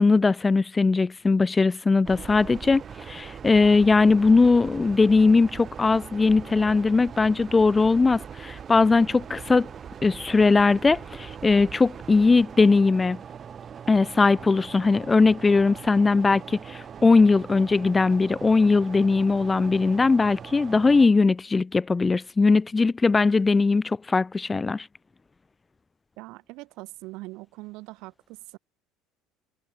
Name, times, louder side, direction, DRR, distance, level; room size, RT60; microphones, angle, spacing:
voice 1, 0.0-9.7 10.0-13.2 13.9-24.9, left 4 dB, 15° left, 0.7 m, -20 dB
sound 1, 2.0-21.1, right 7 dB, 30° right, 1.5 m, -41 dB
voice 2, 26.2-28.6, right 22 dB, 70° right, 2.5 m, -42 dB
cardioid pair, 135°, 0 cm